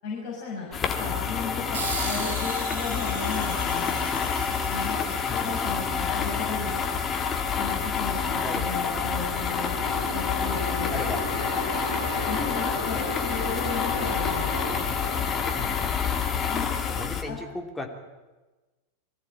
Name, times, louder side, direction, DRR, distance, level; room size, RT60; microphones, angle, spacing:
voice 1, 0.0-0.7 1.0-3.9 4.7-7.0 7.6-9.7 10.1-11.0 12.2-14.5 16.5-16.9 17.3-17.4, left 4 dB, 45° left, -4 dB, 6.0 m, -35 dB
sound 1, 0.7-17.2, left 6 dB, 25° left, 2.1 m, -28 dB
sound 2, 1.7-6.7, right 4 dB, 55° right, 7.5 m, -38 dB
voice 2, 5.3-5.7 8.4-8.7 10.9-11.5 15.5-15.9 17.0-17.9, left 2 dB, 5° left, 2 dB, 3.2 m, -37 dB
sound 3, 8.8-16.7, left 1 dB, 80° left, 4.1 m, -35 dB
22.0 x 15.0 x 9.0 m, 1.2 s
figure-of-eight pair, 90°, 0 cm